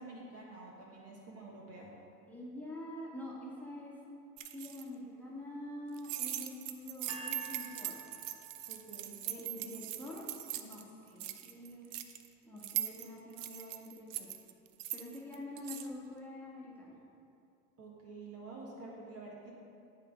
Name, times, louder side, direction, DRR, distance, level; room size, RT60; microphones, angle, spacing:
voice 1, 0.0-2.0 8.7-9.2 17.8-19.5, right 3 dB, 30° right, -3 dB, 1.4 m, -49 dB
voice 2, 2.3-4.0 4.5-7.9 9.2-10.2 10.6-11.9 12.4-14.3 14.9-17.0, left 1 dB, 5° left, -6 dB, 1.6 m, -46 dB
sound 1, 4.4-4.8 5.9-10.8 11.1-12.3 12.6-15.9, right 13 dB, 55° right, 0.6 m, -41 dB
sound 2, 7.1-9.2, right 3 dB, 10° right, 1.0 m, -49 dB
10.5 x 3.8 x 5.1 m, 2.6 s
hypercardioid pair, 90°, 46 cm